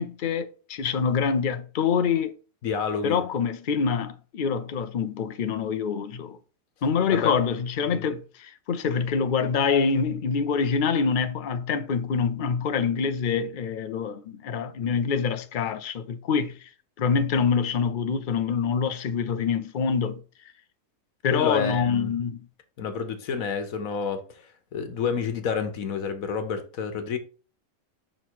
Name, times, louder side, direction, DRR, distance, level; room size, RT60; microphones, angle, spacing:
voice 1, 0.0-2.3 3.0-6.4 6.8-16.7 17.0-20.2 21.2-22.4, left 6 dB, 50° left, 0.6 m, -25 dB
voice 2, 2.6-3.2 7.1-7.3 21.3-22.1 22.8-27.2, left 6 dB, 85° left, 1.4 m, -29 dB
5.7 x 3.7 x 4.6 m
omnidirectional pair, 1.4 m